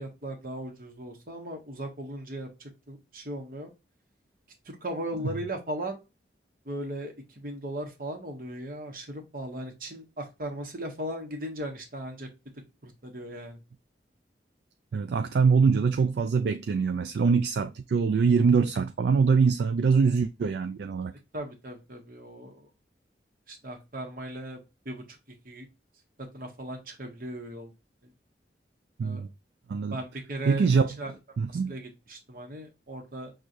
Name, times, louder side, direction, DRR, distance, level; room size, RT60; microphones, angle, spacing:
voice 1, 0.0-3.7 4.7-6.0 6.7-12.3 12.8-13.6 21.3-22.7 23.5-25.0 25.4-25.7 26.3-27.7 29.0-29.2 29.9-30.7 31.0-31.1 31.7-33.3, right 1 dB, 55° right, 1.1 m, -37 dB
voice 2, 14.9-21.1 29.0-29.3 29.7-30.0 30.5-31.0 31.4-31.7, right 5 dB, 70° right, 0.3 m, -24 dB
6.2 x 2.4 x 2.6 m
head